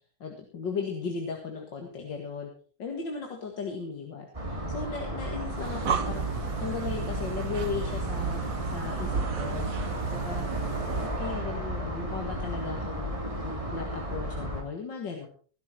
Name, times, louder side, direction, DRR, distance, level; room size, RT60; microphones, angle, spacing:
voice 1, 0.2-2.5 2.8-10.5 11.0-13.1 13.4-15.3, left 5 dB, 60° left, 2 dB, 2.6 m, -37 dB
sound 1, 4.3-14.6, equal, 15° right, 3.1 m, -34 dB
Breathing, 5.4-11.2, right 6 dB, 50° right, 1.1 m, -33 dB
17.5 x 11.5 x 4.4 m, 0.41 s
omnidirectional pair, 2.2 m